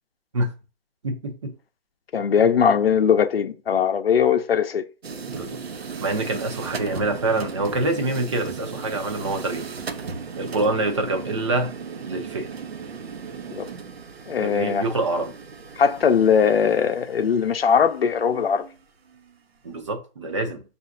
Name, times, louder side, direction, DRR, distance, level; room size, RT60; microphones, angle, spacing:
voice 1, 1.0-1.5 5.3-5.6 6.0-9.7 10.4-11.7 12.0-12.5 14.4-15.3 19.6-20.6, right 2 dB, 30° right, 0.6 m, -26 dB
voice 2, 2.1-4.9 13.5-13.7 14.3-14.8 15.8-18.7, left 7 dB, 70° left, 0.6 m, -20 dB
sound 1, 5.0-19.3, right 5 dB, 75° right, 0.8 m, -37 dB
5.5 x 2.5 x 2.5 m
figure-of-eight pair, 155°, 31 cm